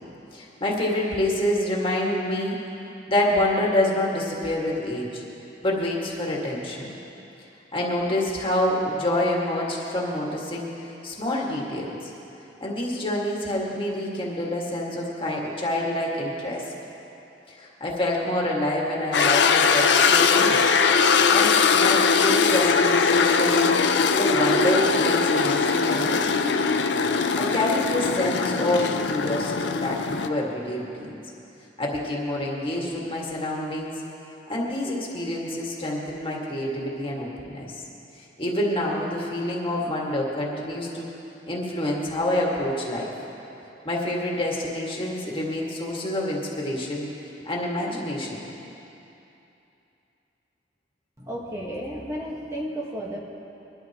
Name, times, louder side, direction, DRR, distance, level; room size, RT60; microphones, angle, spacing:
voice 1, 0.3-2.6 3.1-5.2 5.6-6.9 7.7-12.1 12.6-16.7 17.5-20.6 21.3-23.8 24.2-26.4 27.3-31.2 31.8-33.9 34.5-37.8 38.2-41.1 41.5-43.1 43.8-47.1 47.5-48.4, left 1 dB, 30° left, -3 dB, 1.9 m, -27 dB
sound 1, 19.1-30.3, left 5 dB, 70° left, 0.6 m, -21 dB
Female singing, 21.8-27.5, right 1 dB, 35° right, 0.7 m, -34 dB
voice 2, 51.2-53.2, equal, 20° right, -3 dB, 1.4 m, -33 dB
22.0 x 12.5 x 3.0 m, 2.9 s
head